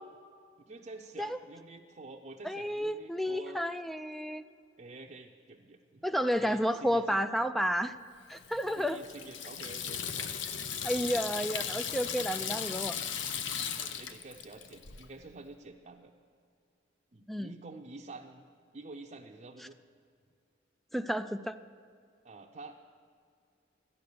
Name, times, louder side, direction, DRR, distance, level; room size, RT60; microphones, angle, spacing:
voice 1, 0.6-3.6 4.8-6.1 6.4-7.2 8.7-10.3 13.5-16.1 17.1-18.4 18.7-19.8 22.2-22.8, right 2 dB, 40° right, -1 dB, 0.6 m, -48 dB
voice 2, 2.4-4.4 6.0-7.9 8.3-9.0 10.8-13.0 17.3-17.5 20.9-21.6, equal, ahead, 11 dB, 0.3 m, -31 dB
Water tap faucet / Sink (filling or washing), 8.3-15.0, left 7 dB, 75° left, 0.7 m, -37 dB
13.0 x 10.5 x 6.8 m, 2.3 s
head